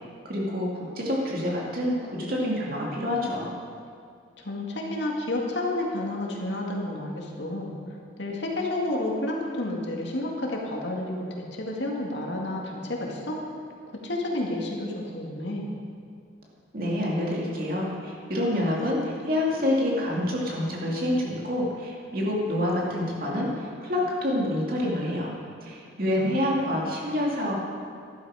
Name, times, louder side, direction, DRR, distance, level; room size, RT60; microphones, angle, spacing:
voice 1, 0.3-3.5 16.7-27.5, left 1 dB, 50° right, -3 dB, 2.5 m, -27 dB
voice 2, 4.4-7.8 8.2-11.2 11.5-13.4 14.0-15.7 26.1-26.6, left 1 dB, 70° left, -1 dB, 2.1 m, -30 dB
12.0 x 12.0 x 4.9 m, 2.3 s
head